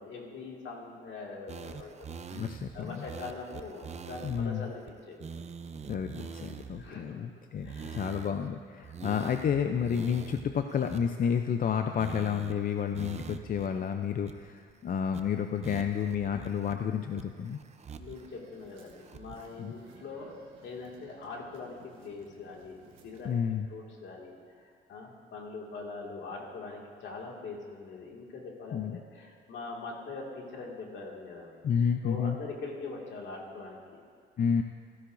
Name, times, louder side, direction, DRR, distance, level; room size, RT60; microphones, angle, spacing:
voice 1, 0.0-5.3 6.8-8.3 17.9-20.4 20.6-23.4 23.7-31.6 32.0-34.0, left 3 dB, 70° left, -1 dB, 2.1 m, -43 dB
sound 1, 1.5-4.5 4.9-5.0 5.2-6.9 7.6-8.5 8.8-11.7 12.0-12.5 12.9-13.7 13.9-14.0 14.2-14.7 15.1-15.2 15.6-16.7 17.2-18.3 18.6-19.5, right 6 dB, 35° right, 0.5 m, -44 dB
voice 2, 2.3-3.0 4.2-4.7 5.9-17.6 19.6-19.7 23.2-23.7 28.7-29.0 31.6-32.4 34.4-34.6, left 7 dB, 45° left, 7 dB, 0.5 m, -30 dB
sound 2, 18.0-23.5, right 5 dB, 90° right, 1.5 m, -58 dB
14.5 x 12.5 x 2.6 m, 2.2 s
cardioid pair, 90°, 20 cm